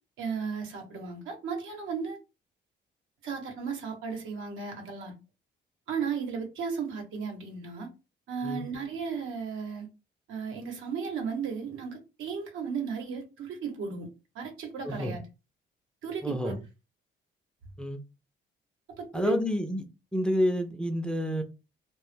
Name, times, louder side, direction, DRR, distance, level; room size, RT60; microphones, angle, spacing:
voice 1, 0.2-2.2 3.2-5.1 5.9-7.9 8.3-9.9 10.3-14.1 14.3-15.2 16.0-16.5 19.0-19.3, right 5 dB, 85° right, 0.9 m, -35 dB
voice 2, 14.8-15.2 16.2-16.6 17.8-18.0 19.1-19.8 20.1-21.4, equal, 5° left, 0.4 m, -29 dB
2.1 x 2.0 x 3.2 m
cardioid pair, 90°, 20 cm